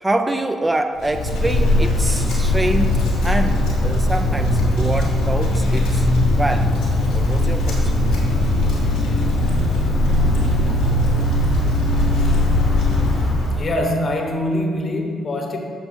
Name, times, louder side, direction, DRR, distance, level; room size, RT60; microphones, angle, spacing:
voice 1, 0.0-6.1 6.3-6.8 7.1-7.9, right 1 dB, 20° right, 6 dB, 0.4 m, -25 dB
Wind, 1.0-13.8, left 1 dB, 90° left, 1.3 m, -19 dB
voice 2, 13.6-15.6, left 1 dB, 50° left, 2 dB, 1.0 m, -23 dB
8.2 x 6.0 x 2.7 m, 2.4 s
hypercardioid pair, 55°, 0 cm